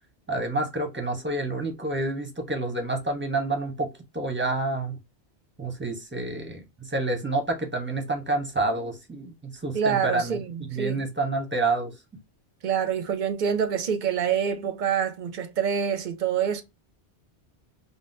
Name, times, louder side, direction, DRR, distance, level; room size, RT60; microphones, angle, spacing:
voice 1, 0.3-5.0 5.6-10.4 10.7-12.0, right 2 dB, 10° right, 0.6 m, -28 dB
voice 2, 9.7-11.1 12.6-16.6, right 7 dB, 55° right, 0.6 m, -26 dB
3.6 x 2.1 x 2.5 m
omnidirectional pair, 1.1 m